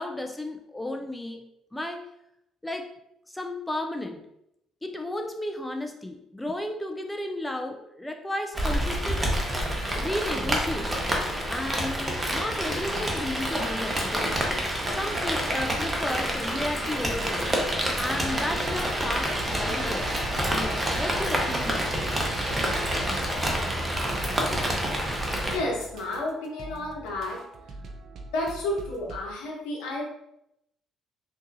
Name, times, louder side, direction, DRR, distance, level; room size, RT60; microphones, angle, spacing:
voice 1, 0.0-2.1 2.6-2.9 3.3-4.3 4.8-9.3 9.9-11.0 11.5-14.3 14.9-17.5 17.9-22.0, left 1 dB, 10° left, 4 dB, 0.4 m, -33 dB
Rain, 8.5-25.6, equal, 20° right, 0.9 m, -28 dB
sound 1, 19.2-29.2, right 2 dB, 60° right, 0.5 m, -44 dB
voice 2, 25.5-27.4 28.3-30.0, left 1 dB, 80° left, -1 dB, 0.9 m, -31 dB
3.6 x 2.7 x 2.6 m, 0.81 s
hypercardioid pair, 55°, 0 cm